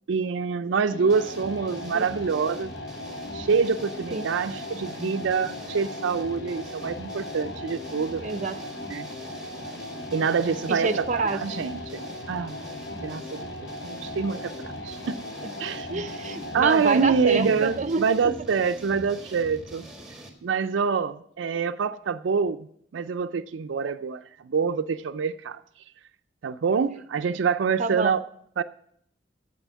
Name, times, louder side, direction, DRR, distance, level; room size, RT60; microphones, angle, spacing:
voice 1, 0.1-2.7 3.3-8.2 8.9-9.1 10.1-12.6 13.0-15.2 15.6-15.9 16.5-19.9 20.4-22.7 22.9-25.6 26.4-28.2 28.6-28.7, right 5 dB, 85° right, 0.4 m, -26 dB
sound 1, 0.9-17.9, left 2 dB, 70° left, 0.9 m, -38 dB
sound 2, 1.1-20.3, right 1 dB, ahead, 1.5 m, -43 dB
voice 2, 7.9-8.6 10.7-11.6 14.3-14.4 15.9-18.3 27.8-28.1, right 3 dB, 40° right, 0.6 m, -28 dB
9.0 x 7.6 x 6.2 m
head